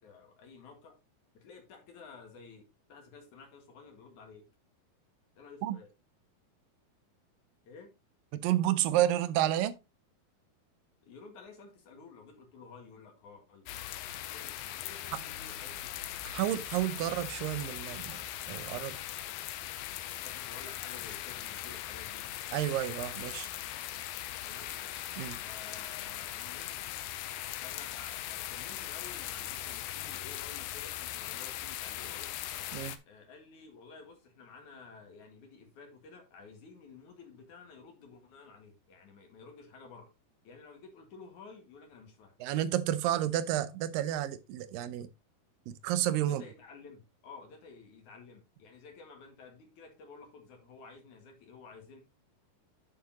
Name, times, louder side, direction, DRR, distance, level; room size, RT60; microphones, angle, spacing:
voice 1, 0.0-1.0 1.3-4.5 5.3-5.9 7.6-7.9 11.0-13.7 14.3-15.9 20.2-22.3 24.4-24.8 25.4-26.8 27.6-32.3 33.1-40.1 40.4-42.4 46.2-52.0, left 4 dB, 55° left, 3.0 m, -52 dB
voice 2, 8.3-9.8 16.3-18.2 18.5-19.0 22.5-23.5 25.2-25.4 32.7-33.0 42.4-45.1 45.7-46.4, right 13 dB, 80° right, 2.1 m, -30 dB
sound 1, 13.7-33.0, left 13 dB, 85° left, 2.5 m, -40 dB
9.5 x 6.6 x 2.9 m
omnidirectional pair, 4.5 m